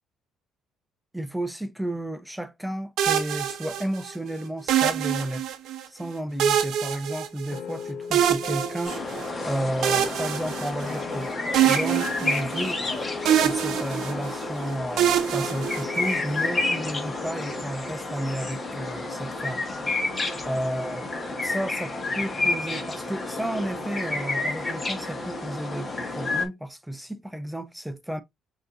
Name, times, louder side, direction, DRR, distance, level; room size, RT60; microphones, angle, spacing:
voice 1, 1.1-5.5 5.9-9.0 9.4-11.4 11.6-12.8 13.4-19.6 20.4-21.1 21.4-25.9 26.2-28.2, right 1 dB, 5° right, 0.7 m, -32 dB
sound 1, 3.0-4.1 4.7-5.8 6.4-7.8 8.1-9.3 9.8-11.2 11.5-12.9 13.3-14.5 15.0-16.3, right 9 dB, 70° right, 0.8 m, -25 dB
sound 2, 7.5-18.6, left 6 dB, 65° left, 1.5 m, -41 dB
sound 3, 8.8-26.5, left 2 dB, 30° left, 1.7 m, -30 dB
6.3 x 3.0 x 2.7 m
supercardioid pair, 75°, 0 cm